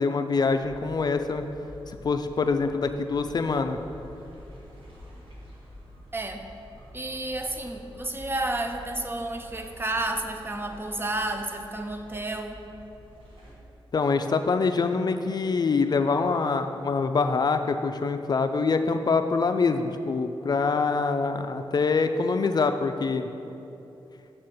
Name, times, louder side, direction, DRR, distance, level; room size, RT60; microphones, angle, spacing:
voice 1, 0.0-1.4 1.9-3.8 13.9-23.3, left 4 dB, 45° left, 8 dB, 0.4 m, -25 dB
sound 1, 0.5-13.5, equal, 70° right, 1.8 m, -48 dB
voice 2, 6.1-6.4 6.9-12.6, right 2 dB, 25° right, 5 dB, 0.7 m, -31 dB
7.3 x 4.3 x 6.4 m, 2.9 s
cardioid pair, 80°, 10 cm